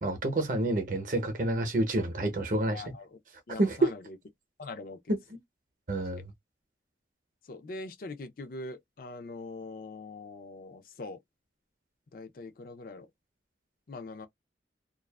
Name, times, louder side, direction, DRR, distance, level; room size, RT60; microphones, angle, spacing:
voice 1, 0.0-2.9 3.6-3.9 5.9-6.2, right 2 dB, 45° right, 0.7 m, -28 dB
voice 2, 2.7-3.2 3.5-4.2 4.6-5.1 6.1-6.2 7.5-11.2 12.1-13.1 13.9-14.3, left 3 dB, 50° left, 0.4 m, -42 dB
2.4 x 2.3 x 2.2 m
head